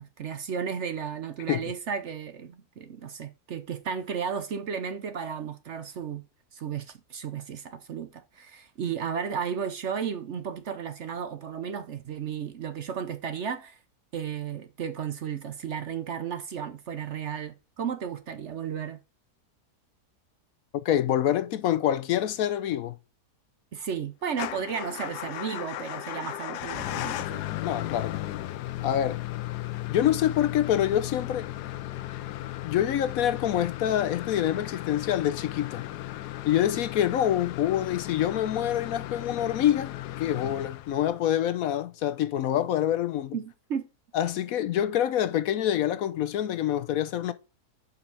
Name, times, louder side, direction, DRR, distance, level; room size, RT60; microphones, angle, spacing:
voice 1, 0.0-6.2 6.5-13.8 14.1-19.0 23.7-27.4 43.3-43.9, right 7 dB, 55° right, 0.9 m, -34 dB
voice 2, 20.8-23.0 27.6-28.2 28.8-29.2 29.9-31.5 32.6-35.9 36.5-39.9 40.2-43.4 44.1-47.3, left 11 dB, 70° left, 1.0 m, -26 dB
Motor vehicle (road) / Engine starting / Idling, 24.3-41.3, left 15 dB, 85° left, 1.2 m, -36 dB
6.9 x 5.5 x 3.9 m
omnidirectional pair, 1.7 m